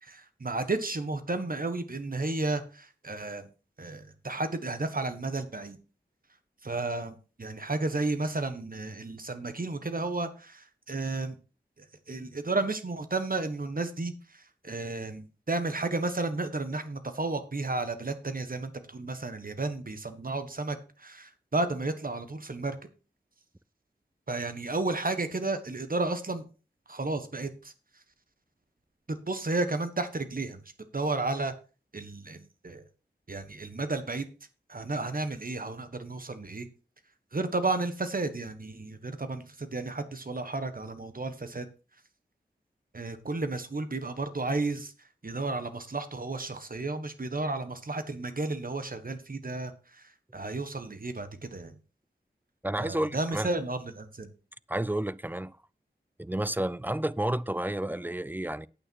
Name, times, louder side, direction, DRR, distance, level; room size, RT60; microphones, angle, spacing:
voice 1, 0.0-3.5 3.8-5.8 6.6-11.3 12.1-22.8 24.3-26.5 26.9-27.7 29.1-30.6 30.9-31.5 31.9-32.8 33.3-34.3 34.7-36.7 37.3-41.7 42.9-44.9 45.2-51.8 52.8-54.3, right 2 dB, 50° right, 1.5 m, -32 dB
voice 2, 52.6-53.5 54.7-55.6 56.2-58.7, right 1 dB, 10° right, 0.4 m, -31 dB
8.9 x 8.9 x 4.7 m
wide cardioid pair, 65°, 18 cm